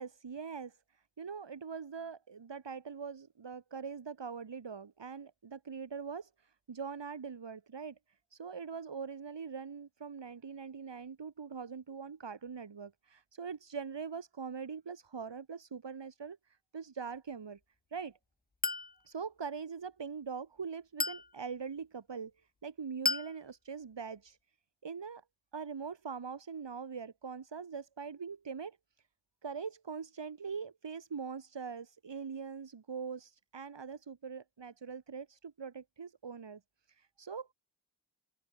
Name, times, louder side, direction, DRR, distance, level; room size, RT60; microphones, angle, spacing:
voice 1, 0.0-8.0 8.3-17.6 17.9-18.2 19.0-24.4 24.8-25.2 25.5-28.8 29.4-36.6 36.9-37.5, right 6 dB, 75° right, 1.6 m, -42 dB
Chink clink, 18.6-19.0 21.0-21.3 23.1-23.4, left 3 dB, 20° left, 0.6 m, -32 dB
wide cardioid pair, 65°, 44 cm